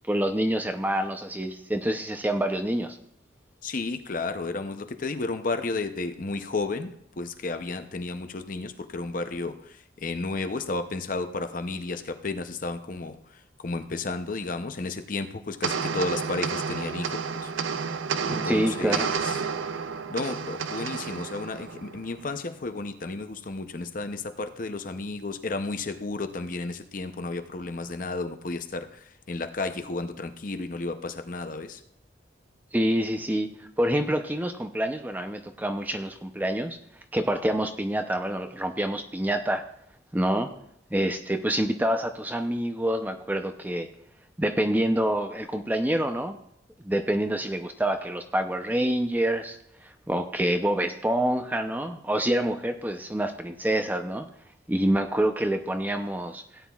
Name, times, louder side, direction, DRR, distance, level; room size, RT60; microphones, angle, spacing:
voice 1, 0.1-3.0 18.3-19.1 32.7-36.8 37.1-39.6 40.1-40.5 40.9-43.9 44.4-46.4 46.8-49.6 49.8-54.3 54.7-56.4, right 1 dB, 10° right, 6 dB, 0.5 m, -27 dB
voice 2, 3.6-17.5 18.2-19.4 20.1-31.8, left 3 dB, 45° left, 8 dB, 0.6 m, -33 dB
sound 1, 15.6-22.3, right 5 dB, 85° right, 0.6 m, -31 dB
17.0 x 9.4 x 2.4 m, 0.72 s
head